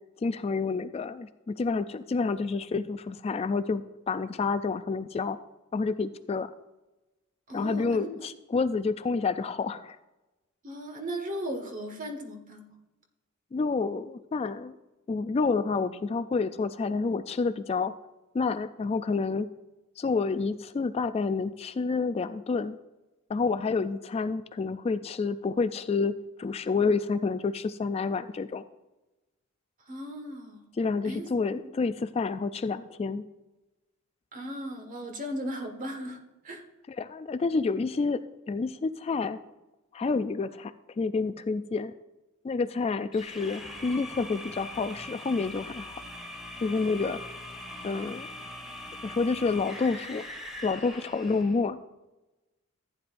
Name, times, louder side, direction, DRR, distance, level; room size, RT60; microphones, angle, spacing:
voice 1, 0.2-5.4 5.7-6.5 7.5-10.0 13.5-14.8 15.1-17.9 18.3-19.5 20.0-22.8 23.3-28.6 30.8-33.2 36.9-39.4 39.9-41.9 42.4-46.0 46.6-47.2 47.8-48.3 49.0-50.2 50.6-51.8, left 4 dB, 30° left, 12 dB, 0.3 m, -29 dB
voice 2, 7.5-8.1 10.6-12.7 29.9-30.6 31.0-31.3 34.3-36.2 36.4-36.6, equal, 40° right, 3 dB, 1.5 m, -36 dB
sound 1, 43.1-51.6, left 1 dB, ahead, 1.6 m, -42 dB
14.5 x 9.5 x 2.5 m, 1.0 s
head